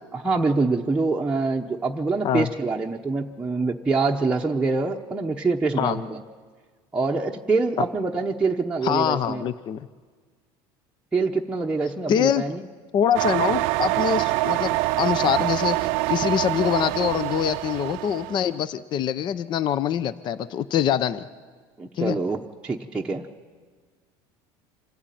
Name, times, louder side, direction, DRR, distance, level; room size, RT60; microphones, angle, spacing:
voice 1, 0.1-6.2 6.9-9.5 11.1-12.6 21.8-23.3, right 3 dB, 10° right, -1 dB, 0.9 m, -25 dB
voice 2, 8.8-9.9 12.1-12.4 12.9-21.3 22.0-22.1, left 9 dB, 40° left, 15 dB, 0.7 m, -24 dB
sound 1, 13.1-18.5, right 19 dB, 70° right, 0.5 m, -25 dB
26.0 x 14.5 x 9.1 m, 1.5 s
cardioid pair, 130°, 11 cm